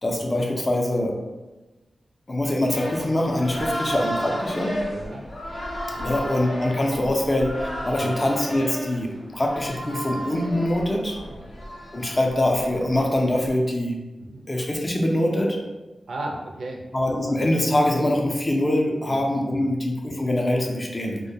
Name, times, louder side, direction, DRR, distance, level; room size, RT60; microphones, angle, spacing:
voice 1, 0.0-1.2 2.3-4.8 6.0-11.2 11.9-13.9 14.5-15.6 16.9-21.2, left 1 dB, 30° left, 0 dB, 0.4 m, -24 dB
sound 1, 2.7-13.5, equal, 75° left, 0.6 m, -33 dB
voice 2, 4.9-5.2 5.9-6.1 8.0-8.1 11.3-11.4 14.2-14.4 16.1-16.8 19.1-19.3 19.6-19.7, right 2 dB, 80° right, 0 dB, 0.4 m, -35 dB
2.2 x 2.1 x 2.7 m, 1.1 s
wide cardioid pair, 80°, 0 cm